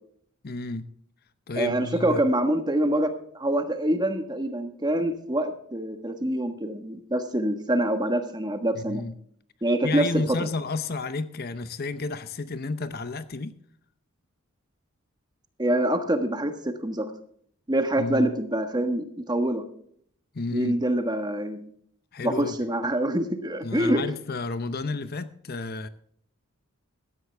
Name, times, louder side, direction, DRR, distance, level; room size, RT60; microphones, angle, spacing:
voice 1, 0.4-0.9 1.5-2.2 8.7-9.1 9.8-13.5 18.0-18.3 20.3-20.8 22.1-22.6 23.6-25.9, left 3 dB, 45° left, 0.7 m, -31 dB
voice 2, 1.6-9.0 9.6-10.5 15.6-17.1 17.7-19.6 20.5-21.7 22.2-24.0, right 1 dB, 20° right, 1.4 m, -25 dB
16.0 x 13.0 x 3.4 m
head